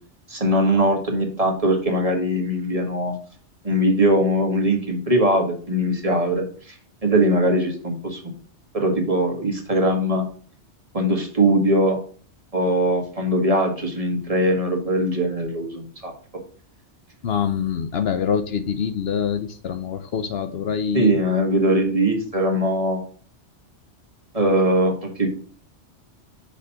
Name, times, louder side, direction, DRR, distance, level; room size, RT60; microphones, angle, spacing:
voice 1, 0.3-3.1 3.6-6.7 7.0-8.3 8.7-10.2 10.9-12.0 12.5-16.1 20.9-23.0 24.3-25.3, right 1 dB, 30° right, 2 dB, 1.5 m, -21 dB
voice 2, 17.2-21.1, left 7 dB, 65° left, 10 dB, 0.8 m, -25 dB
6.0 x 4.1 x 5.6 m, 0.44 s
omnidirectional pair, 1.2 m